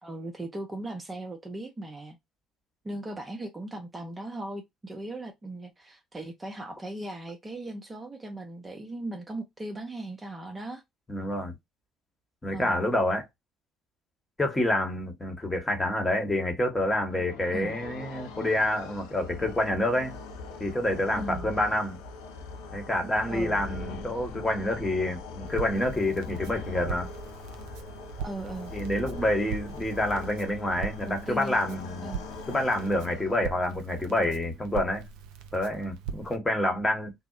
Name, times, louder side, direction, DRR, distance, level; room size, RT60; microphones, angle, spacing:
voice 1, 0.0-2.2 2.8-10.8 12.5-12.8 17.5-17.8 21.2-21.5 23.3-23.6 28.2-28.7 31.0-31.7 32.0-32.3, right 1 dB, 25° right, 0.7 m, -38 dB
voice 2, 11.1-11.5 12.4-13.2 14.4-20.1 20.6-22.0 22.7-27.1 28.7-32.1 32.5-35.1 35.5-37.1, left 1 dB, 20° left, 1.1 m, -28 dB
sound 1, 16.7-33.7, left 4 dB, 75° left, 0.5 m, -41 dB
Crackle, 25.5-36.4, right 7 dB, 70° right, 0.4 m, -41 dB
2.6 x 2.0 x 2.5 m
hypercardioid pair, 55°, 0 cm